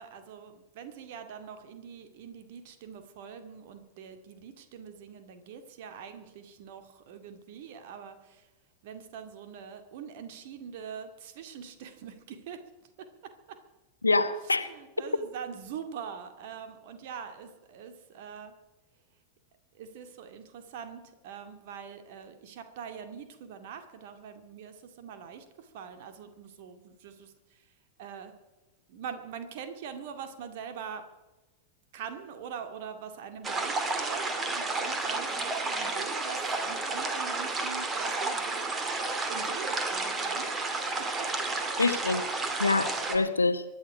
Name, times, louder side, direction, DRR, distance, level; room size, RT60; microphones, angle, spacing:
voice 1, 0.0-8.5 8.8-12.6 13.0-13.6 14.6-18.5 19.7-27.6 28.0-28.3 28.9-31.0 31.9-38.7 39.3-40.6 41.0-41.3 41.6-41.7 42.9-43.3, right 7 dB, 50° right, 2.1 m, -43 dB
voice 2, 14.0-14.7 41.8-42.3 42.6-43.6, left 3 dB, 80° left, 1.0 m, -26 dB
sound 1, 33.4-43.2, right 3 dB, 20° right, 2.2 m, -31 dB
24.0 x 11.0 x 5.0 m
figure-of-eight pair, 90°, 0 cm